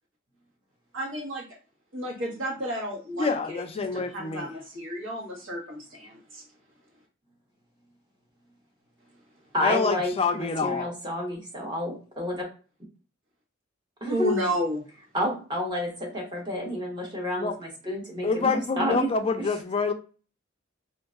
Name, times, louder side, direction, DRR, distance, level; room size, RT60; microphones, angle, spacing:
voice 1, 0.9-1.4 1.9-6.4 14.1-14.8, equal, 70° right, 1.3 m, -32 dB
voice 2, 3.2-4.5 9.6-10.9 17.4-17.6 18.2-19.9, left 4 dB, 30° left, 0.4 m, -27 dB
voice 3, 9.5-12.4 14.0-14.4 15.1-19.1 19.4-19.5, left 1 dB, 25° right, 1.1 m, -30 dB
3.8 x 2.6 x 2.4 m
head